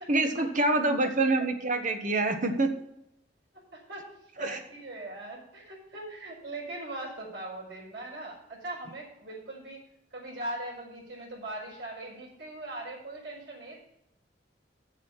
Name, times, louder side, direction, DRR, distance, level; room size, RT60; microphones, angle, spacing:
voice 1, 0.0-2.7 4.4-4.6, right 2 dB, 45° right, 6 dB, 1.4 m, -26 dB
voice 2, 3.7-4.0 4.4-9.8 10.1-13.8, right 2 dB, 70° right, -7 dB, 4.9 m, -40 dB
7.6 x 7.4 x 8.2 m, 0.80 s
head